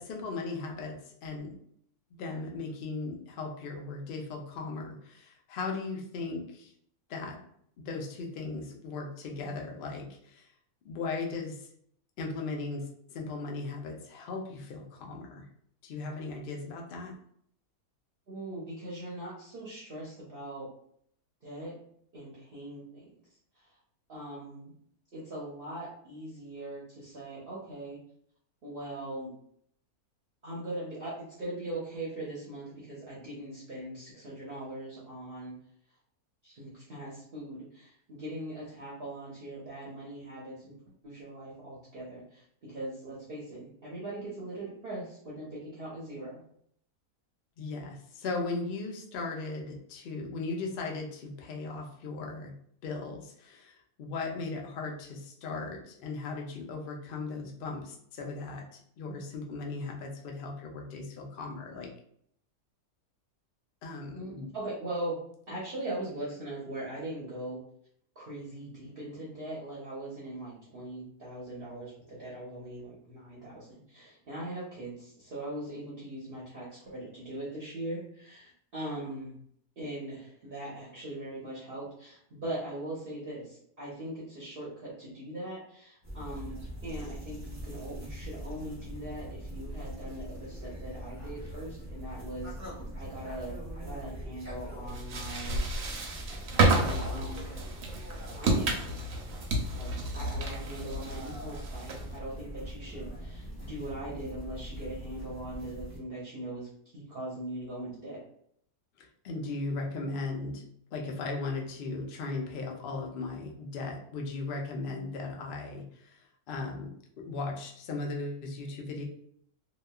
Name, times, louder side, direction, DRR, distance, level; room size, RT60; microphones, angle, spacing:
voice 1, 0.0-1.6 2.2-6.7 7.1-7.5 7.8-10.5 10.8-11.7 12.2-15.5 15.8-17.2 47.6-52.6 52.8-61.9 63.8-64.5 109.0-119.0, left 3 dB, 80° left, 1 dB, 0.5 m, -37 dB
voice 2, 18.3-20.7 21.4-21.8 22.1-23.1 23.6-23.7 24.1-24.7 25.1-28.0 28.6-29.4 30.4-35.5 36.4-40.7 41.0-46.4 64.1-65.2 65.5-67.6 68.2-79.3 79.8-86.5 86.8-92.5 93.0-95.6 96.5-97.5 98.4-99.1 99.8-106.7 106.9-108.2, right 1 dB, 45° right, -7 dB, 0.8 m, -40 dB
sound 1, 86.0-106.0, equal, 20° right, 0.5 m, -42 dB
sound 2, 94.9-102.2, right 2 dB, 80° right, 1.1 m, -30 dB
2.9 x 2.2 x 2.2 m, 0.66 s
omnidirectional pair, 1.6 m